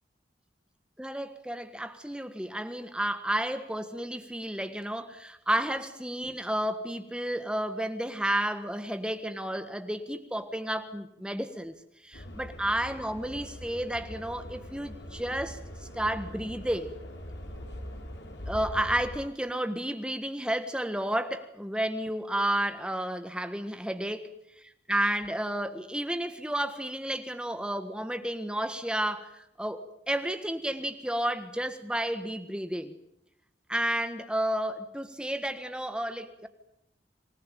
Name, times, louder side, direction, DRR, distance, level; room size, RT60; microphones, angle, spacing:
voice 1, 1.0-11.7 12.0-15.6 15.9-16.9 18.5-32.9 33.7-36.5, right 1 dB, 5° right, 1.5 m, -31 dB
sound 1, 12.1-19.2, equal, 85° left, 4.6 m, -42 dB
27.0 x 19.0 x 9.2 m
head